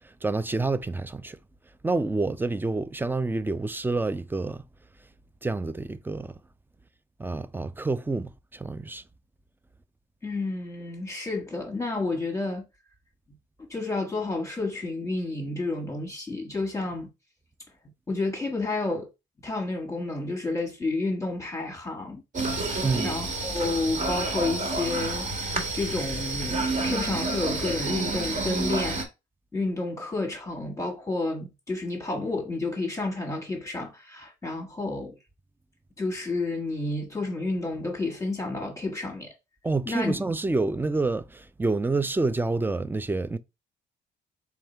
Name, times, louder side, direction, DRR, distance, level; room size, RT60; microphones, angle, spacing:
voice 1, 0.2-1.4 1.8-4.6 5.4-6.3 7.2-9.0 22.8-23.2 39.6-43.4, right 3 dB, 10° right, 0.4 m, -28 dB
voice 2, 10.2-12.6 13.6-17.1 18.1-19.1 19.4-22.2 23.0-25.3 25.7-29.0 29.5-35.1 36.0-39.3 39.8-40.2, left 2 dB, 15° left, 1.2 m, -30 dB
sound 1, 22.3-29.0, right 2 dB, 40° right, 1.6 m, -29 dB
3.5 x 3.5 x 4.3 m
cardioid pair, 90°, 20 cm